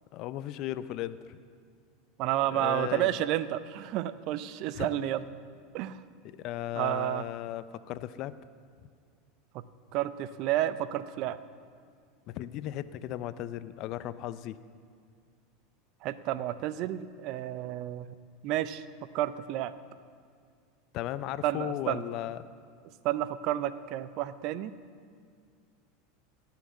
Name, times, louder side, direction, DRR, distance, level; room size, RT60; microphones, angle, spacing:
voice 1, 0.1-1.4 2.5-3.1 4.8-5.0 6.2-8.3 12.3-14.6 20.9-22.4, left 13 dB, 55° left, 15 dB, 0.4 m, -36 dB
voice 2, 2.2-5.2 5.7-6.0 6.8-7.3 9.9-11.4 16.0-18.1 18.4-18.9 19.1-19.7 21.4-22.0 23.0-24.7, right 13 dB, 55° right, 15 dB, 0.5 m, -30 dB
17.0 x 5.9 x 7.2 m, 2.1 s
hypercardioid pair, 90°, 0 cm